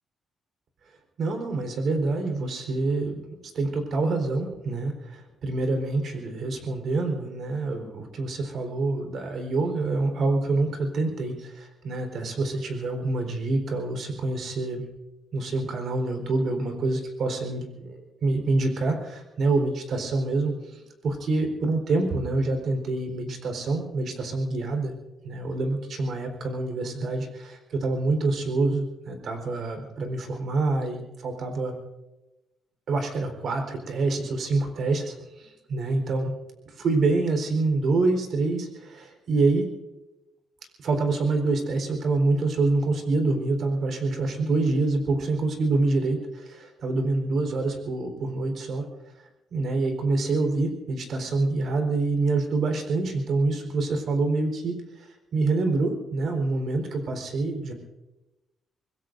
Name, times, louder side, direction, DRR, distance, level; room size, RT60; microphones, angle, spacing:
voice 1, 1.2-14.9 15.3-24.9 25.2-31.8 32.9-36.3 36.7-39.7 40.8-48.8 49.5-57.7, right 3 dB, 65° right, 4 dB, 4.1 m, -26 dB
26.0 x 21.0 x 2.6 m, 1.0 s
cardioid pair, 110°, 0 cm